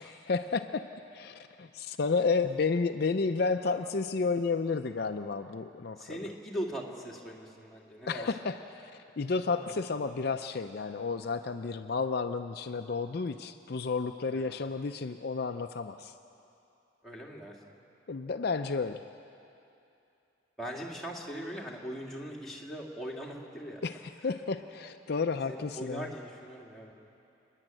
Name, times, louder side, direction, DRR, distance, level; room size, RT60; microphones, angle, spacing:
voice 1, 0.0-6.2 8.1-16.1 18.1-19.0 23.8-26.1, left 4 dB, 55° left, 7 dB, 0.5 m, -32 dB
voice 2, 6.0-8.3 9.4-9.7 14.3-14.6 17.0-17.6 20.6-23.8 24.2-24.3 25.5-26.9, equal, ahead, -3 dB, 2.2 m, -40 dB
28.5 x 11.0 x 9.0 m, 2.8 s
head